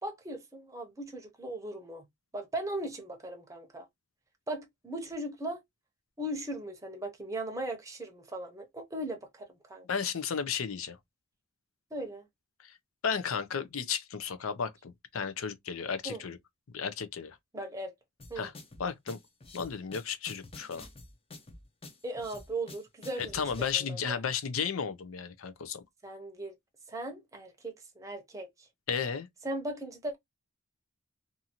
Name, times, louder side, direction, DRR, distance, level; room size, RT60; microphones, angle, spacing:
voice 1, 0.0-2.1 2.3-3.9 4.5-5.6 6.2-9.9 11.9-12.3 16.0-16.2 17.5-17.9 18.3-18.5 22.0-24.2 26.0-26.6 26.9-28.7 29.4-30.2, right 1 dB, 15° right, 0.7 m, -38 dB
voice 2, 9.9-11.0 13.0-16.4 16.7-17.4 18.4-18.5 18.8-19.2 19.5-20.9 23.3-25.8 28.9-29.3, left 6 dB, 80° left, 0.5 m, -33 dB
sound 1, 18.2-23.7, left 2 dB, 30° left, 0.6 m, -49 dB
2.7 x 2.5 x 2.8 m
head